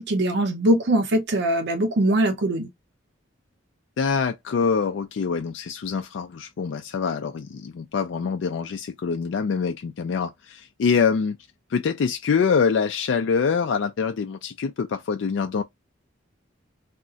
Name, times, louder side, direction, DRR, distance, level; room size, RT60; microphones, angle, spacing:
voice 1, 0.0-2.7, right 1 dB, 60° right, 0.6 m, -22 dB
voice 2, 4.0-11.4 11.7-15.6, left 6 dB, 65° left, 0.3 m, -25 dB
2.4 x 2.1 x 3.7 m
head